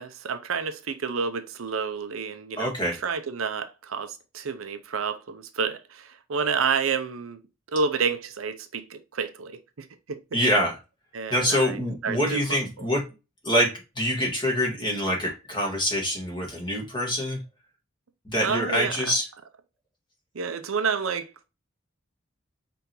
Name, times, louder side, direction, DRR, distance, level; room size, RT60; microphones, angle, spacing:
voice 1, 0.0-2.7 3.0-7.4 7.7-10.2 11.1-12.6 18.4-19.0 20.3-21.5, right 5 dB, 80° right, 0.6 m, -29 dB
voice 2, 2.6-3.0 10.3-10.7 11.3-13.0 13.4-13.7 13.9-17.4 18.2-19.2, equal, 25° left, 1.7 m, -25 dB
5.2 x 3.4 x 2.9 m
head